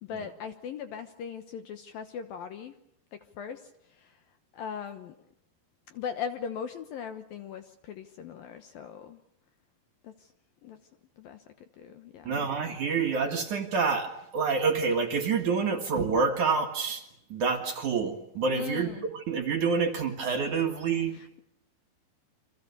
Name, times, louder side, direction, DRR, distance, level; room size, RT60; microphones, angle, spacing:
voice 1, 0.0-2.8 3.1-4.2 4.5-5.2 5.9-9.2 10.0-10.3 10.6-10.8 11.2-11.4 11.8-12.5 18.5-19.1 21.1-21.4, left 7 dB, 70° left, 8 dB, 2.4 m, -39 dB
voice 2, 12.3-21.2, right 5 dB, 55° right, 4 dB, 2.7 m, -28 dB
29.5 x 26.0 x 6.9 m, 0.75 s
omnidirectional pair, 5.3 m